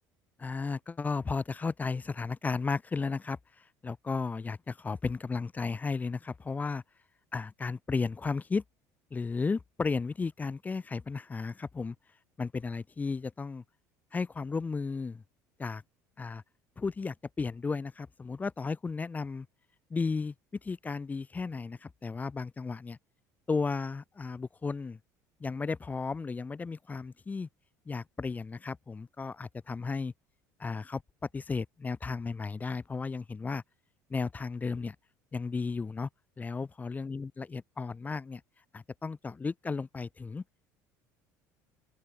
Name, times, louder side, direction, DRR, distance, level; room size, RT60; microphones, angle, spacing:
voice 1, 0.4-3.4 3.8-6.8 7.3-8.6 9.1-12.0 12.4-13.6 14.1-15.2 15.6-15.8 16.2-16.4 16.8-19.5 19.9-20.3 20.6-23.0 23.5-25.0 25.4-27.5 27.9-30.1 30.6-31.0 31.3-33.6 34.1-35.0 35.3-36.1 36.4-38.4 38.7-40.4, left 4 dB, 20° left, 0.3 m, -34 dB
open air
hypercardioid pair, 75°, 9 cm